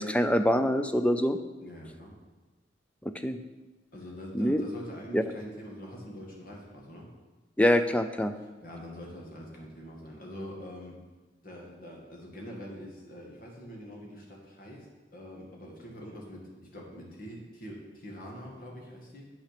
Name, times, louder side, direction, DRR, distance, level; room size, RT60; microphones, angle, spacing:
voice 1, 0.0-1.4 3.2-3.4 4.3-4.6 5.1-5.2 7.6-8.3, equal, 5° left, 9 dB, 0.4 m, -24 dB
voice 2, 1.6-2.2 3.9-7.1 8.4-11.0 11.4-19.3, equal, 50° left, -2 dB, 2.0 m, -44 dB
8.5 x 5.9 x 5.9 m, 1.2 s
head